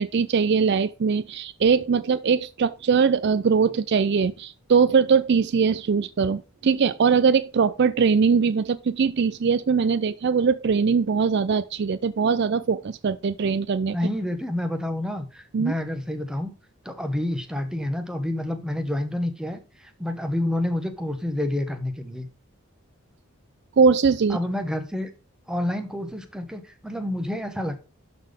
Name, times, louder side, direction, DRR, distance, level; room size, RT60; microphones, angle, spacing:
voice 1, 0.0-14.0 15.5-15.7 23.8-24.4, right 5 dB, 50° right, 0.4 m, -21 dB
voice 2, 13.9-16.5 16.8-22.3 24.3-25.1 25.5-27.8, left 1 dB, 5° right, 1.1 m, -28 dB
12.0 x 4.1 x 5.2 m
head